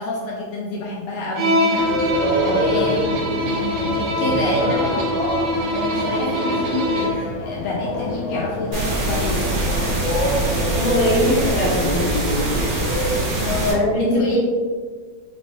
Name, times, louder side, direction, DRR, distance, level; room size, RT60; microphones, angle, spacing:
voice 1, 0.0-2.3 2.5-5.1 5.5-9.9 13.4-14.4, left 2 dB, 85° left, -4 dB, 1.5 m, -28 dB
Bowed string instrument, 1.4-7.3, equal, 55° right, 2.1 m, -23 dB
sound 1, 1.8-13.2, equal, 70° left, 1.6 m, -27 dB
voice 2, 2.2-2.7 10.7-12.2 13.7-14.4, left 1 dB, 50° left, -8 dB, 1.9 m, -21 dB
sound 2, 8.7-13.7, right 2 dB, 75° right, 1.0 m, -23 dB
5.2 x 3.0 x 2.7 m, 1.6 s
omnidirectional pair, 3.7 m